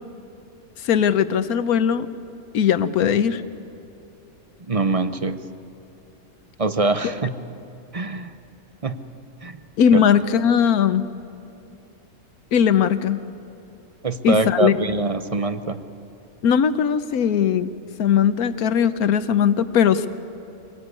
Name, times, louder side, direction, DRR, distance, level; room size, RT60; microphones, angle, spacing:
voice 1, 0.8-2.1 2.5-3.4 9.8-11.1 12.5-13.2 14.2-14.7 16.4-17.7 18.0-20.1, left 8 dB, 85° left, 12 dB, 1.4 m, -19 dB
voice 2, 4.7-5.4 6.6-7.3 7.9-8.3 8.8-9.0 9.4-9.6 9.9-10.0 14.0-15.8, right 3 dB, 30° right, 10 dB, 0.7 m, -23 dB
25.5 x 18.5 x 9.6 m, 2.8 s
omnidirectional pair, 1.5 m